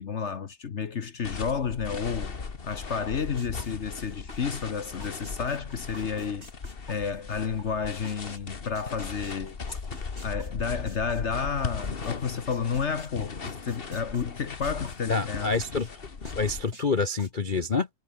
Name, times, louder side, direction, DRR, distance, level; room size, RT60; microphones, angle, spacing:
voice 1, 0.0-2.4 2.6-6.5 6.9-9.8 10.2-15.5, left 6 dB, 45° left, 0.9 m, -31 dB
sound 1, 1.2-16.7, left 5 dB, 30° left, 1.5 m, -38 dB
sound 2, 3.4-4.7 5.0-8.4 8.7-12.1 12.5-15.0 15.3-15.9 16.2-17.3, right 1 dB, 30° right, 7.7 m, -49 dB
voice 2, 15.1-15.9 16.4-17.9, left 4 dB, 90° left, 0.4 m, -27 dB
omnidirectional pair, 2.4 m